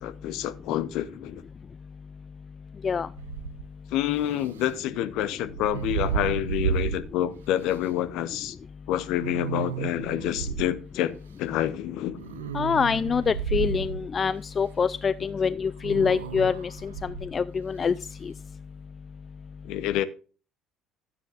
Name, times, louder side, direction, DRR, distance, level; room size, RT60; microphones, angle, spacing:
voice 1, 0.0-1.4 3.9-8.6 8.9-12.2 19.6-20.0, left 12 dB, 65° left, 0.8 m, -28 dB
sound 1, 3.2-3.7 5.4-7.1 7.7-7.8 9.2-10.7 12.2-14.1 15.8-17.3, right 7 dB, 85° right, 0.5 m, -32 dB
voice 2, 12.5-17.9, left 6 dB, 35° left, 0.4 m, -25 dB
12.0 x 9.5 x 2.5 m
hypercardioid pair, 60°, 0 cm